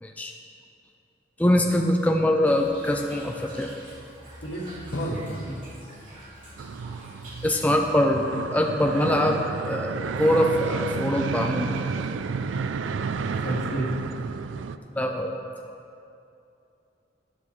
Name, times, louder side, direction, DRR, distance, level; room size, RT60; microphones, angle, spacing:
voice 1, 0.0-0.3 1.4-3.7 7.4-9.4 9.7-11.8 15.0-15.3, left 1 dB, 10° left, 2 dB, 0.4 m, -23 dB
Toilet flush / Trickle dribble, 2.4-7.9, right 1 dB, 45° right, 2.6 m, -45 dB
voice 2, 4.4-5.3 13.3-13.9, right 1 dB, 85° left, -4 dB, 2.2 m, -31 dB
Drum, 4.9-7.8, left 1 dB, 65° left, 0.8 m, -42 dB
sound 1, 6.6-14.8, right 5 dB, 90° right, 0.4 m, -31 dB
12.5 x 9.2 x 3.2 m, 2.7 s
head